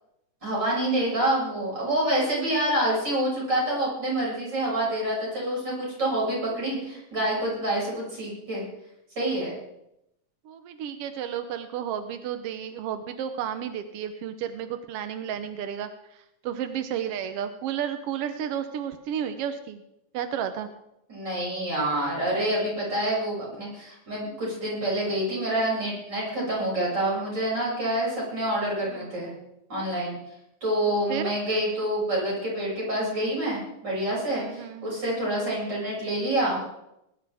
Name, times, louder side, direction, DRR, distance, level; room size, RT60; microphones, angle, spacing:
voice 1, 0.4-8.6 9.2-9.5 21.1-29.3 29.7-30.2 30.6-36.6, right 1 dB, 30° right, -5 dB, 7.3 m, -27 dB
voice 2, 10.4-19.8 20.1-20.7 28.8-29.2 30.8-31.3 34.3-34.9 35.3-35.6, right 9 dB, 75° right, 9 dB, 1.4 m, -32 dB
21.0 x 11.5 x 3.5 m, 0.84 s
omnidirectional pair, 3.6 m